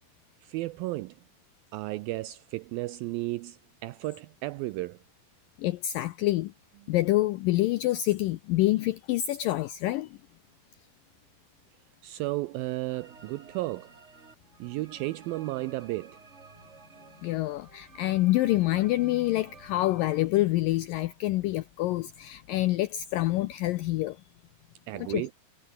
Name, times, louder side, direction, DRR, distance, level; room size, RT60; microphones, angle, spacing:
voice 1, 0.4-1.2 1.7-5.0 6.9-7.0 12.0-13.9 14.6-16.2 24.9-25.3, right 19 dB, 85° right, 2.1 m, -34 dB
voice 2, 5.6-6.5 6.9-10.2 17.2-24.2 24.9-25.3, left 16 dB, 85° left, 2.0 m, -27 dB
sound 1, 12.9-20.3, right 4 dB, 25° right, 1.6 m, -53 dB
omnidirectional pair, 4.8 m